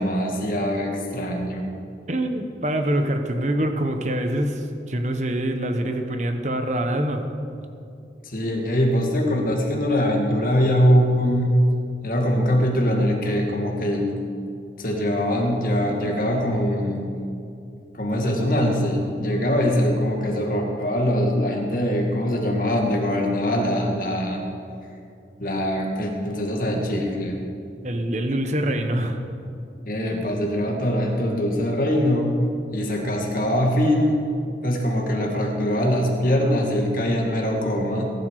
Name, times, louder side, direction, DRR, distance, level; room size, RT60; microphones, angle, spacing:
voice 1, 0.0-1.7 8.2-11.6 12.0-14.2 14.8-17.1 17.9-24.4 25.4-27.4 29.9-32.3 32.7-34.2 34.6-38.1, equal, 50° left, 0 dB, 2.4 m, -22 dB
voice 2, 2.1-7.2 27.8-29.2, right 1 dB, 40° right, 6 dB, 1.2 m, -25 dB
20.5 x 12.0 x 4.9 m, 2.5 s
head